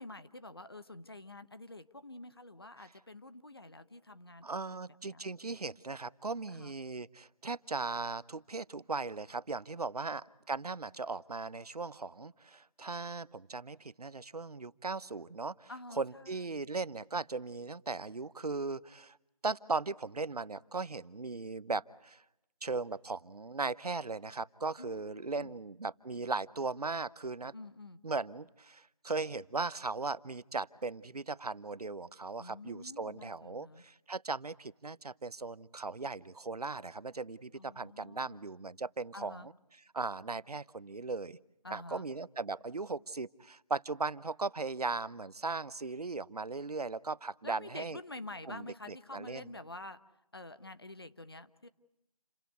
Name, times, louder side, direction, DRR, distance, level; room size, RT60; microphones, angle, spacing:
voice 1, 0.0-4.6 5.1-5.2 6.5-6.7 15.7-16.7 24.8-25.6 27.5-28.0 32.4-33.8 37.5-38.4 39.1-39.5 41.6-42.1 47.4-50.0 50.3-51.7, left 2 dB, 40° left, 12 dB, 1.1 m, -48 dB
voice 2, 4.4-15.7 16.0-19.2 19.4-22.2 22.6-27.5 28.0-39.5 39.9-41.4 41.7-48.0 48.5-49.4, right 3 dB, 85° right, 18 dB, 0.9 m, -38 dB
29.0 x 17.0 x 9.4 m, 0.87 s
figure-of-eight pair, 180°, 19 cm